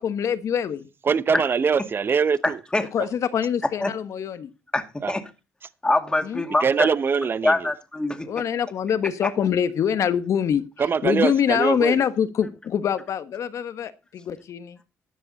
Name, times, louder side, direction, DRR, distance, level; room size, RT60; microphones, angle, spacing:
voice 1, 0.0-0.9 2.9-4.5 6.2-6.4 8.3-10.7 11.0-14.8, left 8 dB, 65° left, 1.3 m, -24 dB
voice 2, 1.1-2.6 5.0-5.2 6.6-7.7 10.8-12.0, right 6 dB, 40° right, 0.8 m, -23 dB
voice 3, 4.7-5.2 5.8-6.9 7.4-8.3, left 2 dB, 15° left, 2.3 m, -24 dB
14.0 x 9.9 x 4.1 m
cardioid pair, 85°, 6 cm